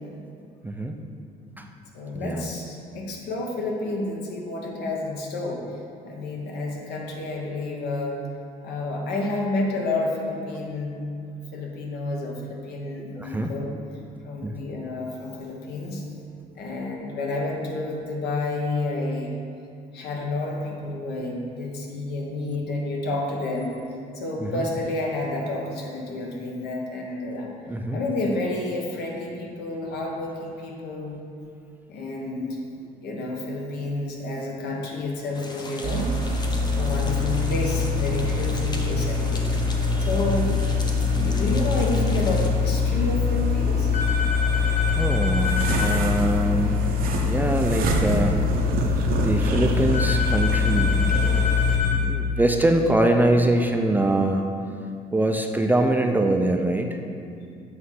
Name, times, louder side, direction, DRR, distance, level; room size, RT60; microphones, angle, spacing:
voice 1, 0.6-1.0 1.6-1.7 2.1-2.5 13.2-13.5 14.4-14.6 24.4-24.6 27.7-28.0 39.9-40.1 45.0-46.9 47.2-48.4 49.2-51.2 51.9-54.4 55.1-57.0, right 1 dB, 10° right, 3 dB, 0.4 m, -23 dB
voice 2, 1.9-8.2 8.6-11.0 11.5-13.7 14.2-16.0 16.5-19.4 19.9-23.8 24.1-27.5 27.9-31.2 31.9-32.6 33.0-36.1 36.7-39.5 40.0-40.6 41.1-43.9 48.8-49.3, left 2 dB, 75° left, 0 dB, 1.2 m, -30 dB
sound 1, 35.3-42.5, left 2 dB, 25° left, 0.7 m, -38 dB
sound 2, 35.8-51.8, left 4 dB, 60° right, 0.7 m, -23 dB
sound 3, 43.9-46.0 49.9-52.0, left 4 dB, 50° left, 0.9 m, -29 dB
7.7 x 3.2 x 5.6 m, 2.4 s
cardioid pair, 110°, 17 cm